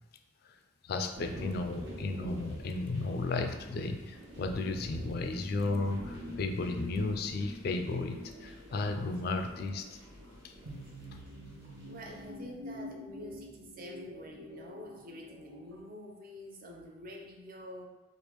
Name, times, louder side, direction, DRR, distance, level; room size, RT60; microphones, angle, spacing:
voice 1, 0.8-9.9 10.4-10.5, left 3 dB, 50° left, 6 dB, 0.3 m, -34 dB
sound 1, 1.1-12.3, equal, 65° right, 1.2 m, -48 dB
sound 2, 3.6-15.8, left 1 dB, 85° right, 0.7 m, -47 dB
voice 2, 11.8-17.9, equal, 45° right, 0 dB, 0.5 m, -47 dB
3.3 x 2.4 x 3.0 m, 1.1 s
head